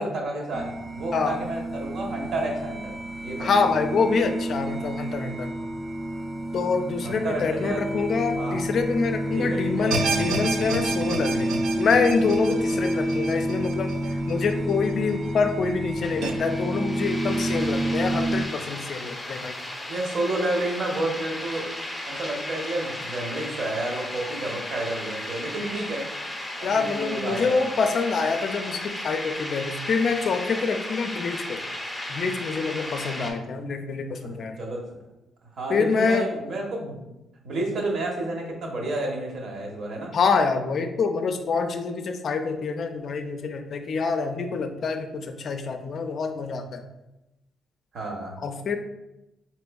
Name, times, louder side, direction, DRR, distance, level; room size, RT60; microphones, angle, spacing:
voice 1, 0.0-3.0 3.2-3.5 7.0-8.1 8.3-8.6 9.3-9.9 19.8-21.7 22.1-26.1 26.7-27.7 34.2-34.8 35.5-37.0 37.4-40.1 47.9-48.4, right 2 dB, 60° right, 0 dB, 0.9 m, -30 dB
sound 1, 0.5-18.4, right 1 dB, 25° right, 0.3 m, -29 dB
voice 2, 3.4-5.5 6.5-14.0 14.3-19.6 26.6-31.7 32.1-34.6 35.7-36.3 40.1-46.8 48.4-48.8, left 5 dB, 55° left, 7 dB, 0.4 m, -26 dB
sound 2, 9.9-15.1 15.5-15.6 16.2-16.3, right 3 dB, 85° right, 0.4 m, -31 dB
sound 3, 16.0-33.3, left 1 dB, 15° left, 0.6 m, -35 dB
4.2 x 3.0 x 2.3 m, 0.95 s
cardioid pair, 90°, 0 cm